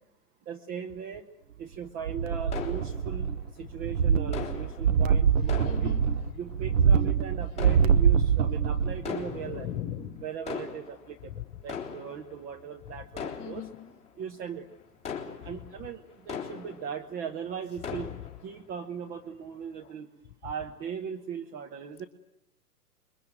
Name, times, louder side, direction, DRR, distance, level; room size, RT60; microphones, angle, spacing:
voice 1, 0.4-1.3 1.6-6.0 6.3-9.7 10.2-13.7 14.1-14.7 15.4-18.1 18.4-20.1 20.4-22.0, right 7 dB, 20° right, 5 dB, 1.1 m, -39 dB
sound 1, 2.0-3.5 3.8-9.1 9.4-9.5, right 7 dB, 55° right, 1.4 m, -24 dB
sound 2, 2.5-3.6 4.3-6.7 7.5-8.5 9.0-9.9 10.3-17.3 17.6-18.7 19.1-19.2 19.8-19.9, left 7 dB, 15° left, 3.8 m, -40 dB
voice 2, 5.6-6.0 8.8-10.1 13.4-13.7, left 11 dB, 30° left, 8 dB, 3.5 m, -38 dB
26.5 x 23.0 x 9.1 m, 0.84 s
figure-of-eight pair, 115°, 48 cm